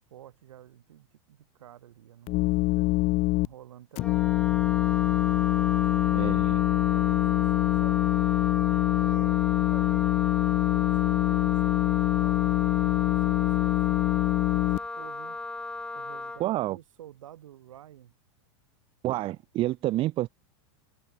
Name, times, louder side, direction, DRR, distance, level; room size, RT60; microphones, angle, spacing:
voice 1, 0.1-3.0 3.4-4.5 5.5-8.1 9.0-15.4 15.9-18.1, right 12 dB, 85° right, 5.7 m, -50 dB
sound 1, 2.3-3.5 4.0-14.8, left 22 dB, 40° left, 0.6 m, -24 dB
Wind instrument woodwind instrument, 4.0-16.4, left 2 dB, 5° left, 1.2 m, -36 dB
voice 2, 6.1-6.6 16.4-16.8 19.0-20.3, right 16 dB, 35° right, 0.6 m, -28 dB
supercardioid pair, 130°, 16 cm